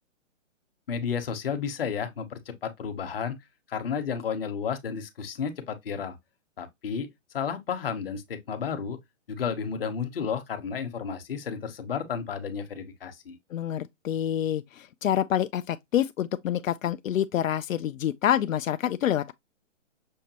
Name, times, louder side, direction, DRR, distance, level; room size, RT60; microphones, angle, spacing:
voice 1, 0.9-3.4 3.7-6.2 6.6-7.1 7.3-9.0 9.3-13.4, left 6 dB, 45° left, 0.9 m, -32 dB
voice 2, 13.5-19.3, left 10 dB, 85° left, 0.5 m, -27 dB
6.4 x 2.2 x 2.8 m
hypercardioid pair, 170°, 39 cm